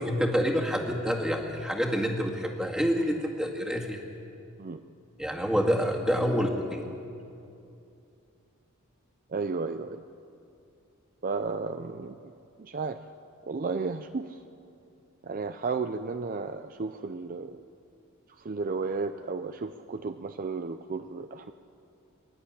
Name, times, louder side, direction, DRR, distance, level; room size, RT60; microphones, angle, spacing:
voice 1, 0.0-4.0 5.2-6.8, equal, 5° right, 0 dB, 2.0 m, -27 dB
voice 2, 9.3-10.0 11.2-12.3 12.6-13.0 13.5-14.4 15.2-17.6 18.3-21.5, right 4 dB, 40° right, 9 dB, 0.5 m, -33 dB
24.0 x 11.0 x 10.0 m, 2.6 s
head